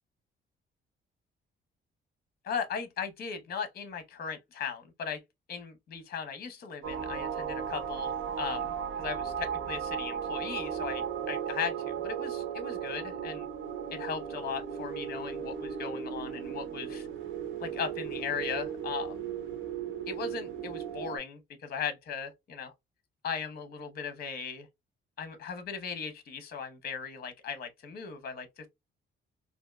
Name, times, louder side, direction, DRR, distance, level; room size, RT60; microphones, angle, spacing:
voice 1, 2.4-5.2 5.5-13.5 13.9-17.1 17.6-19.3 20.1-22.7 23.2-24.7 25.2-28.7, left 6 dB, 50° left, 0.8 m, -38 dB
sound 1, 6.8-21.2, right 8 dB, 80° right, 0.8 m, -36 dB
3.5 x 2.6 x 2.3 m
cardioid pair, 150°, 20 cm